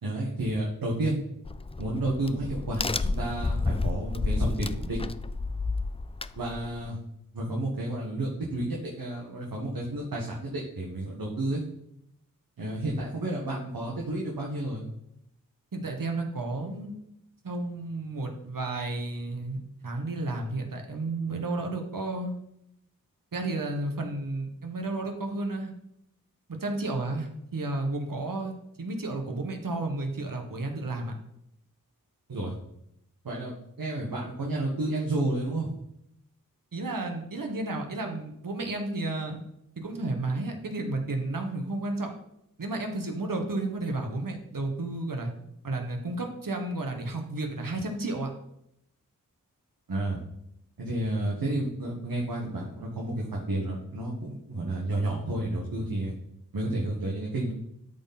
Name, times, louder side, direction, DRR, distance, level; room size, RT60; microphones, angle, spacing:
voice 1, 0.0-1.2 1.8-5.0 6.3-7.0 7.3-11.6 12.6-14.8 32.3-32.5 33.2-35.7 49.9-50.2 50.8-56.1 56.5-57.5, right 1 dB, 90° right, -2 dB, 1.5 m, -31 dB
Crack, 1.5-6.9, left 3 dB, 20° left, 0.3 m, -31 dB
voice 2, 15.7-16.9 17.4-22.3 23.3-25.7 26.6-28.5 28.8-31.1 36.7-39.4 39.8-42.1 42.6-45.3 45.6-48.3, right 2 dB, 70° right, 4 dB, 1.5 m, -32 dB
12.5 x 4.1 x 4.2 m, 0.78 s
cardioid pair, 40°, 34 cm